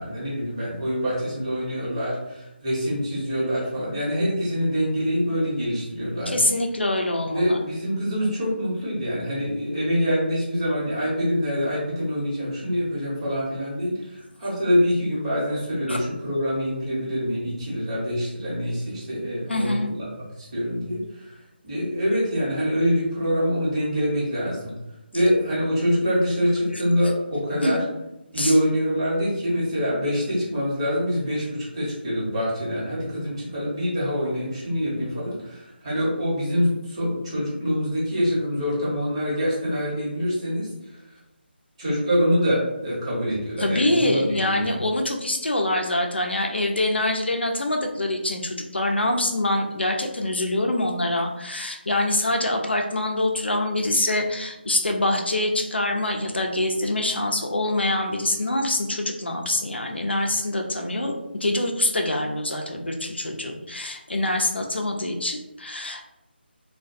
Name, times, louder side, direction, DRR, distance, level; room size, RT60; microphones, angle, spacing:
voice 1, 0.0-6.5 7.3-20.1 20.4-21.3 21.6-24.7 25.1-27.8 28.3-41.0 41.8-44.8, equal, 30° right, -7 dB, 1.0 m, -25 dB
voice 2, 6.3-7.6 15.9-16.0 19.5-19.9 27.6-27.8 28.3-28.5 43.6-61.1 61.4-66.1, left 1 dB, 70° left, 2 dB, 0.4 m, -25 dB
2.3 x 2.2 x 2.6 m, 0.93 s
figure-of-eight pair, 155°, 6 cm